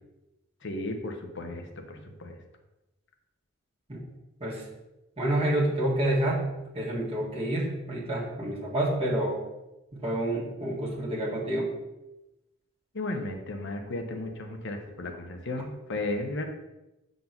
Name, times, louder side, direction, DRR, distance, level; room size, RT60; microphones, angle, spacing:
voice 1, 0.6-2.4 12.9-16.5, left 2 dB, 60° left, 4 dB, 1.1 m, -34 dB
voice 2, 5.2-6.5 6.7-9.4 9.9-11.7, right 1 dB, 30° right, -4 dB, 1.8 m, -28 dB
8.3 x 4.1 x 6.0 m, 0.98 s
head